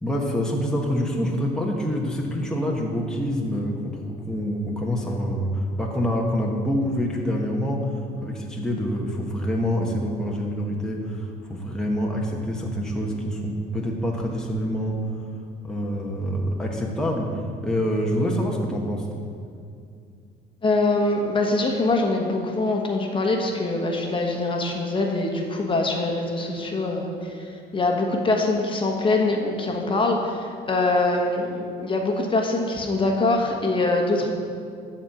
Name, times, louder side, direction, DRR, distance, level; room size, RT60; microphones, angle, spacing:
voice 1, 0.0-15.2 15.6-19.1, equal, 5° left, -2 dB, 1.3 m, -26 dB
voice 2, 20.6-27.3 27.7-34.3, left 2 dB, 30° left, 1 dB, 1.3 m, -23 dB
13.0 x 4.4 x 7.7 m, 2.4 s
cardioid pair, 110°, 17 cm